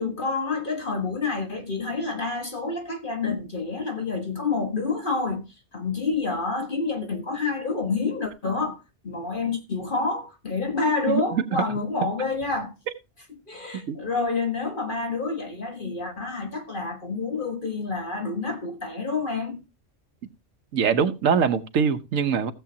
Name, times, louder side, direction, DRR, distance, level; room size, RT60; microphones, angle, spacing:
voice 1, 0.0-5.4 5.7-12.7 13.5-19.6, left 4 dB, 40° left, 1.6 m, -28 dB
voice 2, 11.1-11.6 13.9-14.0 20.7-22.5, right 6 dB, 85° right, 1.3 m, -23 dB
16.0 x 7.2 x 2.8 m
omnidirectional pair, 1.3 m